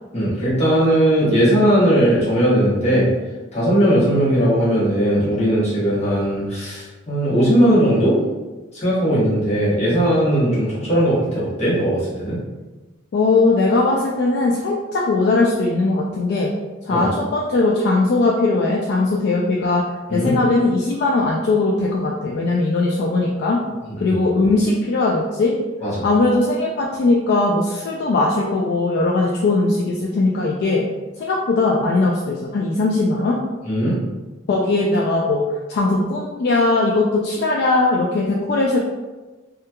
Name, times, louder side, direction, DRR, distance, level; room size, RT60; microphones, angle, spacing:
voice 1, 0.1-3.1 3.5-8.2 8.7-12.4 16.9-17.1 20.1-20.3 23.9-24.1 25.8-26.0 33.6-34.0, equal, 35° left, -8 dB, 1.0 m, -18 dB
voice 2, 13.1-16.5 16.9-19.8 20.1-23.6 24.0-25.6 26.0-30.9 31.2-33.4 34.5-35.4 35.7-38.8, left 2 dB, 60° left, -2 dB, 0.3 m, -19 dB
2.8 x 2.3 x 2.2 m, 1.2 s
head